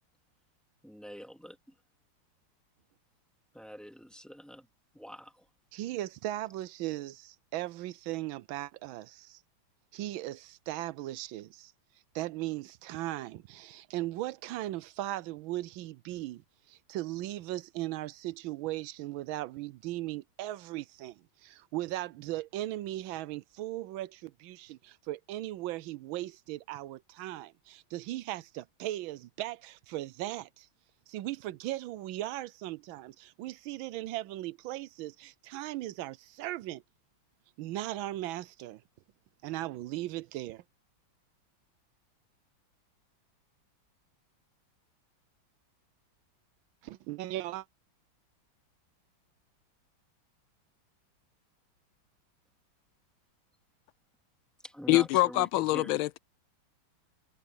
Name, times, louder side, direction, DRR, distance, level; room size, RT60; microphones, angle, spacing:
voice 1, 0.8-1.6 3.5-4.7 4.9-5.5 54.6-56.0, equal, ahead, 2.5 m, -44 dB
voice 2, 5.7-9.4 9.9-11.7 12.1-30.7 31.1-36.8 37.6-38.8 39.4-40.6 46.8-47.7, right 15 dB, 80° right, 1.4 m, -38 dB
voice 3, 54.9-56.2, left 18 dB, 85° left, 1.4 m, -25 dB
omnidirectional pair, 2.2 m